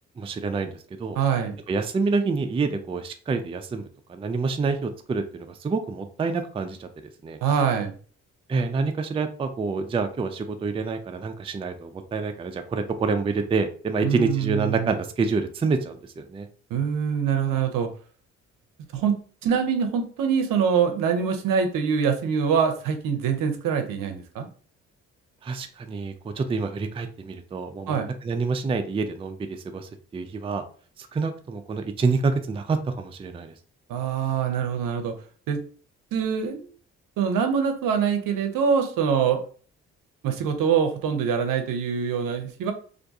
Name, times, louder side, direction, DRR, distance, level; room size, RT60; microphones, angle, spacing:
voice 1, 0.2-1.2 1.7-6.9 7.2-7.4 8.5-16.5 25.4-28.0 28.2-30.6 31.0-33.5, right 4 dB, 15° right, 7 dB, 0.4 m, -27 dB
voice 2, 1.1-1.5 7.4-7.9 14.0-14.9 16.7-17.9 18.9-24.5 27.9-28.1 33.9-35.1 35.5-35.6 36.1-36.7 37.2-39.4 40.2-42.7, right 7 dB, 65° right, 6 dB, 0.6 m, -24 dB
2.5 x 2.2 x 2.7 m, 0.42 s
hypercardioid pair, 40°, 37 cm